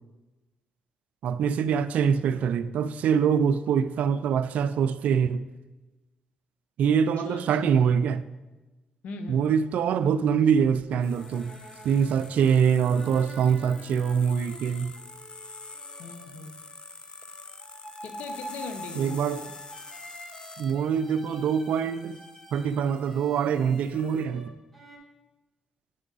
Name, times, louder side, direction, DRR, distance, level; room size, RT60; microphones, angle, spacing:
voice 1, 1.2-5.4 6.8-8.2 9.3-11.5 11.8-14.9 19.0-19.4 20.6-22.2 22.5-24.5, right 7 dB, 75° right, 0.3 m, -24 dB
voice 2, 6.9-7.7 9.0-9.4 16.0-16.5 18.0-19.5, left 4 dB, 80° left, 0.7 m, -40 dB
sound 1, 10.9-25.0, right 1 dB, 5° left, 1.9 m, -47 dB
sound 2, 11.0-24.2, left 4 dB, 40° left, 0.5 m, -47 dB
9.8 x 3.6 x 3.9 m
supercardioid pair, 55°, 3 cm